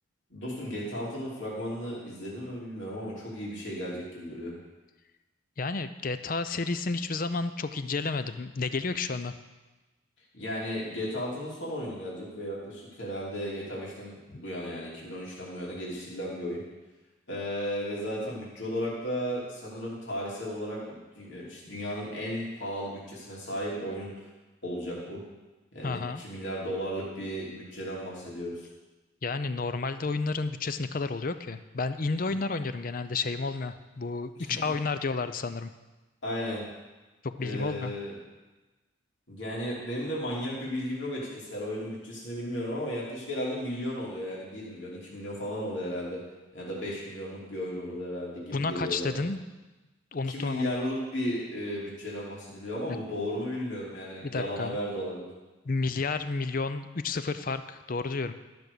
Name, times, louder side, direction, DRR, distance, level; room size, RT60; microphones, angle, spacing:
voice 1, 0.3-4.5 10.3-16.6 17.3-24.1 24.6-25.2 25.7-28.6 32.3-32.4 34.4-34.6 36.2-36.6 37.4-38.1 39.3-46.2 46.5-49.2 50.3-55.3, equal, 70° left, -5 dB, 2.9 m, -35 dB
voice 2, 5.6-9.4 14.3-14.4 25.8-26.2 29.2-35.7 37.2-37.9 48.5-49.4 50.1-50.7 54.2-54.8 55.6-58.3, left 3 dB, 45° left, 11 dB, 0.5 m, -31 dB
13.0 x 6.1 x 6.8 m, 1.2 s
head